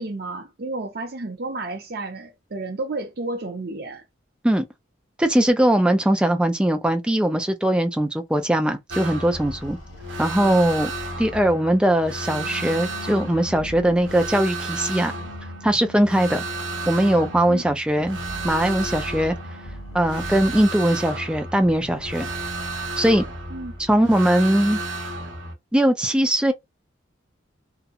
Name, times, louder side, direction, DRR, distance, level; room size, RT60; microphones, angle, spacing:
voice 1, 0.0-4.0 17.5-17.6 23.5-23.7, right 2 dB, 50° right, 0.6 m, -31 dB
voice 2, 5.2-9.8 10.2-10.9 11.2-15.1 15.6-16.5 16.9-18.2 18.4-19.4 19.9-22.3 23.0-23.2 23.8-24.8 25.7-26.5, right 1 dB, 5° right, 0.3 m, -20 dB
sound 1, 8.9-25.5, right 2 dB, 75° right, 0.8 m, -33 dB
sound 2, 9.2-11.9 13.3-15.0 16.0-16.1 16.4-16.5 17.8-21.0 21.5-24.1, right 1 dB, 80° left, 0.7 m, -42 dB
sound 3, 12.2-14.2 14.8-17.5 18.1-20.4, left 2 dB, 40° left, 1.0 m, -46 dB
2.8 x 2.1 x 2.4 m
head